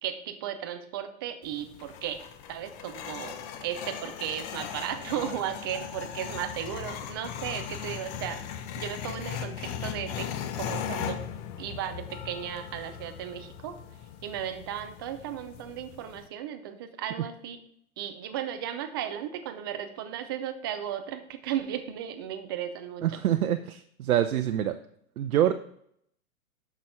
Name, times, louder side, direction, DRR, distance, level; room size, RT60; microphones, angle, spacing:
voice 1, 0.0-2.2 2.5-8.4 8.8-10.3 10.6-11.2 11.6-13.7 14.2-17.6 18.0-23.1, right 10 dB, 20° right, 8 dB, 0.3 m, -35 dB
sound 1, 1.4-16.3, left 9 dB, 30° left, 0.7 m, -38 dB
voice 2, 23.0-24.8 25.2-25.5, right 11 dB, 75° right, 8 dB, 0.6 m, -25 dB
6.7 x 6.1 x 4.8 m, 0.70 s
hypercardioid pair, 120°, 43 cm